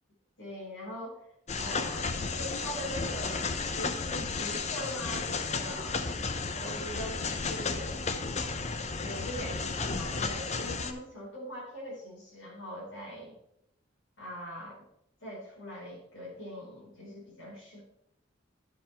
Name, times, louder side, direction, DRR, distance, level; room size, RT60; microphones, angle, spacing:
voice 1, 0.4-1.3 1.6-6.0 6.5-8.0 9.0-13.3 14.2-14.8 15.2-17.8, equal, 85° left, -5 dB, 4.7 m, -42 dB
sound 1, 1.5-10.9, left 4 dB, 40° left, 0.8 m, -33 dB
11.5 x 7.5 x 4.5 m, 0.80 s
head